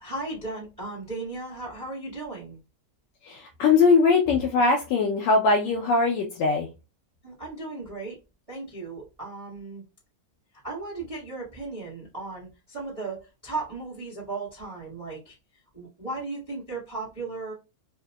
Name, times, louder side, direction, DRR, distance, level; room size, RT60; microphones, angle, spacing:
voice 1, 0.0-2.6 7.2-8.2 8.5-9.8 10.6-15.4 15.7-17.5, right 3 dB, 65° right, -7 dB, 0.3 m, -36 dB
voice 2, 3.2-6.7, left 4 dB, 75° left, 1 dB, 1.7 m, -21 dB
4.9 x 2.7 x 2.2 m, 0.29 s
omnidirectional pair, 3.7 m